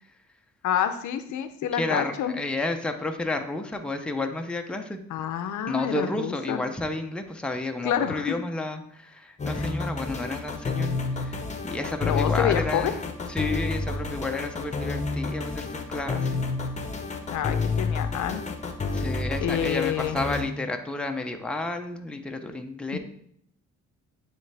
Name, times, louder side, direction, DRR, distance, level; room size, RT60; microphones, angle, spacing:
voice 1, 0.6-2.3 5.1-6.6 7.8-8.4 9.5-9.6 12.0-12.9 17.3-18.4 19.4-20.2 22.9-23.0, left 10 dB, 75° left, 9 dB, 0.6 m, -28 dB
voice 2, 1.7-5.0 5.7-13.0 13.3-16.4 18.9-23.0, left 2 dB, 5° left, 4 dB, 0.6 m, -31 dB
sound 1, 9.4-20.4, left 4 dB, 25° left, 0.9 m, -29 dB
9.2 x 3.3 x 3.4 m, 0.69 s
cardioid pair, 90°, 30 cm